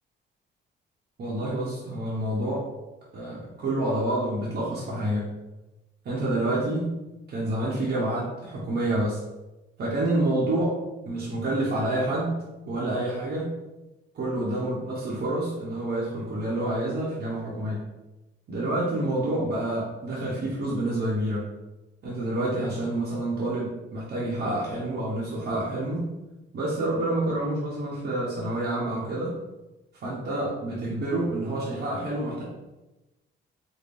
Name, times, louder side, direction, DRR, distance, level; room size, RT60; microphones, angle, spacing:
voice 1, 1.2-2.7 3.1-5.3 6.0-6.9 7.3-9.2 9.8-10.8 11.0-12.4 12.6-13.5 14.1-17.8 18.5-21.5 22.0-26.0 26.5-29.4 29.9-32.4, right 1 dB, 60° right, -7 dB, 1.0 m, -28 dB
4.2 x 2.2 x 3.5 m, 1.0 s
cardioid pair, 90°, 20 cm